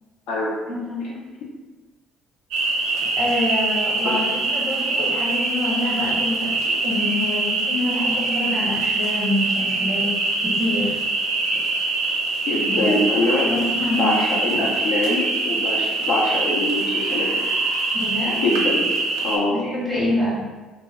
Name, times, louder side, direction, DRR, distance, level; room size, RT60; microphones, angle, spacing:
voice 1, 0.7-1.2 3.2-10.1 10.4-11.0 12.7-13.0 13.4-14.6 17.9-18.4 19.5-20.4, left 1 dB, 10° left, -8 dB, 0.8 m, -26 dB
sound 1, 2.5-19.4, right 3 dB, 85° right, 0.5 m, -23 dB
voice 2, 12.5-13.5 14.0-17.3 18.4-18.9 19.2-19.6, left 2 dB, 65° left, -4 dB, 0.5 m, -23 dB
2.1 x 2.0 x 3.4 m, 1.3 s
cardioid pair, 175°, 0 cm